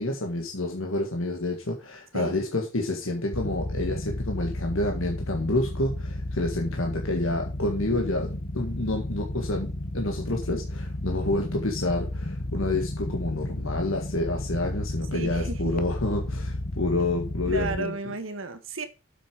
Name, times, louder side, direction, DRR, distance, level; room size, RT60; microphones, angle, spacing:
voice 1, 0.0-17.9, left 2 dB, 70° left, 2 dB, 1.8 m, -29 dB
sound 1, 3.3-17.8, left 1 dB, 40° left, 1.1 m, -32 dB
voice 2, 15.1-15.7 17.5-18.9, right 3 dB, 65° right, 10 dB, 1.4 m, -33 dB
7.7 x 7.2 x 4.9 m, 0.30 s
head